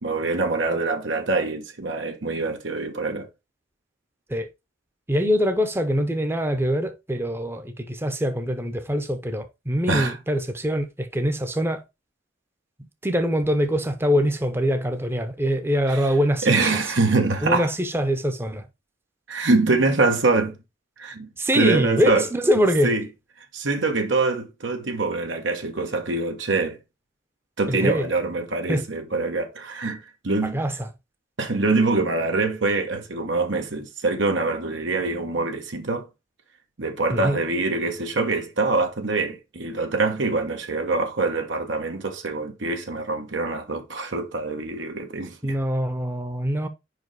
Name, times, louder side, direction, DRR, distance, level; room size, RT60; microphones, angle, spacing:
voice 1, 0.0-3.3 9.9-10.2 15.9-16.1 16.4-17.7 19.3-20.6 21.0-22.2 22.8-23.1 23.5-26.8 27.6-30.6 31.4-36.1 36.8-45.6, right 3 dB, 80° right, 1.3 m, -24 dB
voice 2, 5.1-11.8 13.0-16.7 17.4-18.6 21.4-22.9 27.7-28.1 28.7-28.8 30.4-30.9 37.1-37.4 45.4-46.7, equal, 15° right, 0.8 m, -24 dB
5.2 x 4.9 x 4.6 m
head